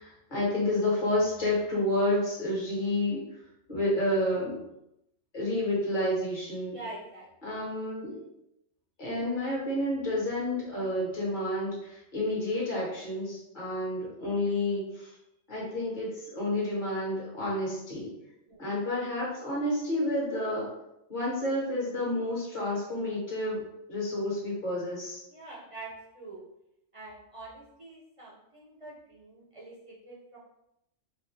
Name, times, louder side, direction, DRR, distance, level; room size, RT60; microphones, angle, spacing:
voice 1, 0.0-3.4 3.7-4.6 5.3-6.8 7.4-8.2 9.0-15.1 15.5-18.1 18.6-20.7 21.1-23.6 23.9-25.2, left 1 dB, 40° left, -6 dB, 1.6 m, -30 dB
voice 2, 6.7-7.3 18.5-18.6 25.3-26.4 26.9-30.4, right 2 dB, 30° right, -5 dB, 0.9 m, -45 dB
3.7 x 2.6 x 3.3 m, 0.84 s
omnidirectional pair, 1.3 m